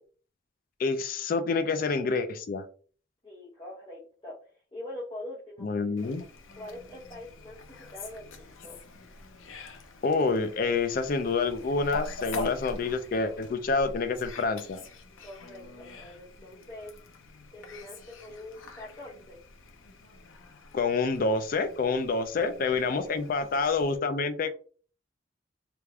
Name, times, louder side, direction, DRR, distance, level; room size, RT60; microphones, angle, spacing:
voice 1, 0.8-2.6 5.6-6.2 10.0-14.8 20.7-24.6, left 4 dB, 45° left, 9 dB, 0.3 m, -27 dB
voice 2, 3.2-6.1 6.5-8.8 15.2-16.9 17.5-19.4 22.1-22.5 23.0-23.2, left 1 dB, 25° left, -8 dB, 0.9 m, -44 dB
Fowl, 6.0-24.0, left 2 dB, 90° left, 0.6 m, -44 dB
3.4 x 3.3 x 2.3 m, 0.42 s
head